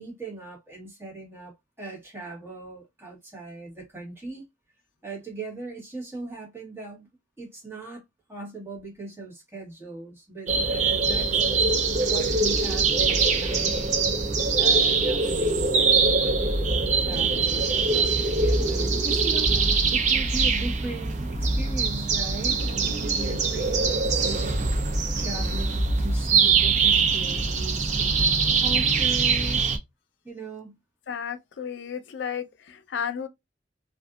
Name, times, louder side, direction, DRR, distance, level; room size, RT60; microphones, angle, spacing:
voice 1, 0.0-1.5 1.8-4.4 5.0-7.1 7.4-8.0 8.3-11.8 12.1-24.8 25.1-29.6 30.2-30.8, right 2 dB, 15° right, 1.3 m, -39 dB
sound 1, 10.5-29.8, right 4 dB, 40° right, 0.5 m, -23 dB
voice 2, 31.1-33.3, left 7 dB, 85° left, 0.4 m, -33 dB
2.6 x 2.5 x 2.3 m
head